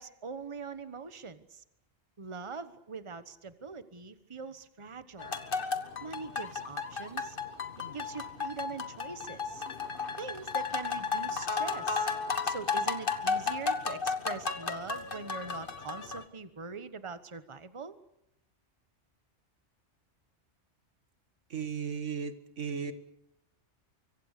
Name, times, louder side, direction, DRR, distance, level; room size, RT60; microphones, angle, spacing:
voice 1, 0.0-1.6 2.2-5.3 6.0-7.4 7.9-9.6 10.2-12.1 12.4-18.0, right 5 dB, 25° right, 12 dB, 1.2 m, -42 dB
Ueno Shamisen - Japan, 5.2-16.2, left 5 dB, 50° left, 1.7 m, -34 dB
voice 2, 21.5-22.9, right 6 dB, 85° right, 10 dB, 1.9 m, -35 dB
24.5 x 24.5 x 6.7 m, 0.81 s
omnidirectional pair, 1.2 m